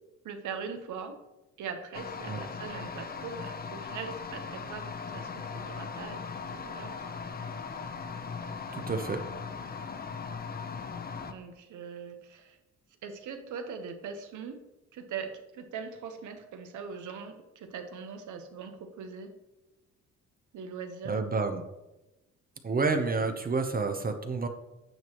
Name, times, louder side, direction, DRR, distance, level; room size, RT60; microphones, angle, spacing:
voice 1, 0.2-1.2 1.6-6.9 11.3-12.6 13.0-14.6 14.9-19.3 20.5-21.2, right 6 dB, 80° right, 6 dB, 1.0 m, -41 dB
sound 1, 1.9-11.3, left 5 dB, 30° left, 0.7 m, -39 dB
voice 2, 8.7-9.2 21.1-21.6 22.6-24.5, right 4 dB, 30° right, 7 dB, 0.8 m, -29 dB
9.4 x 5.9 x 3.0 m, 0.98 s
cardioid pair, 90°, 30 cm